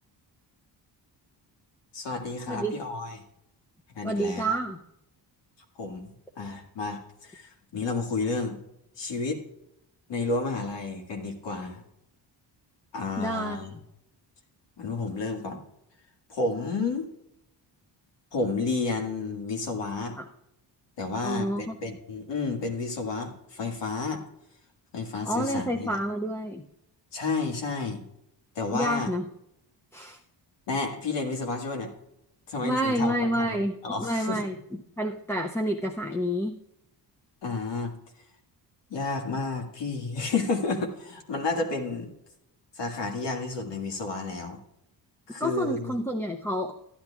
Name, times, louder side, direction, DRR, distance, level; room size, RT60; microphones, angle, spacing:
voice 1, 1.9-3.2 4.0-4.6 5.8-6.1 6.4-8.6 9.0-9.4 10.1-11.8 12.9-13.7 14.8-15.6 16.3-17.1 18.3-20.2 21.0-24.2 24.9-26.0 27.1-28.0 28.6-29.1 30.7-31.9 32.5-34.4 37.4-37.9 38.9-42.1 42.8-44.6 45.3-45.9, left 3 dB, 70° left, 3 dB, 1.9 m, -31 dB
voice 2, 2.5-2.8 4.0-4.8 13.2-13.6 20.2-20.3 21.2-21.8 25.2-26.6 28.7-29.3 29.9-30.2 32.6-36.6 45.4-46.7, equal, 5° left, 2 dB, 0.4 m, -29 dB
14.5 x 10.5 x 2.3 m, 0.82 s
cardioid pair, 135°, 44 cm